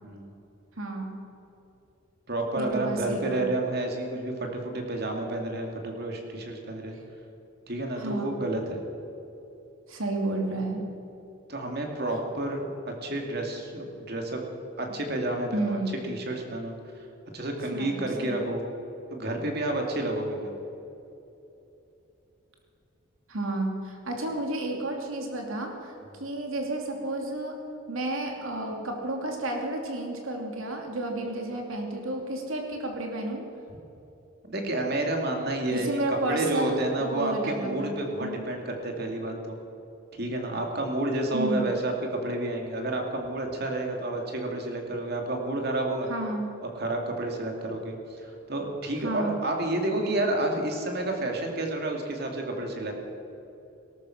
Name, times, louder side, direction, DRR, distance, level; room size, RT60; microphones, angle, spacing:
voice 1, 0.0-0.3 2.3-7.0 7.7-8.8 11.5-14.4 14.8-15.8 16.1-17.0 17.3-18.6 19.1-20.5 34.4-39.6 40.2-46.1 46.7-52.9, right 2 dB, 50° right, 2 dB, 2.4 m, -30 dB
voice 2, 0.8-1.2 2.5-3.5 8.0-8.4 9.9-10.8 15.5-16.0 17.7-18.4 23.3-25.9 26.2-27.6 27.9-33.4 35.7-37.9 38.2-38.4 41.3-41.6 46.1-46.5 49.0-49.4, right 2 dB, 90° right, 1 dB, 3.0 m, -31 dB
18.5 x 13.0 x 6.0 m, 2.9 s
head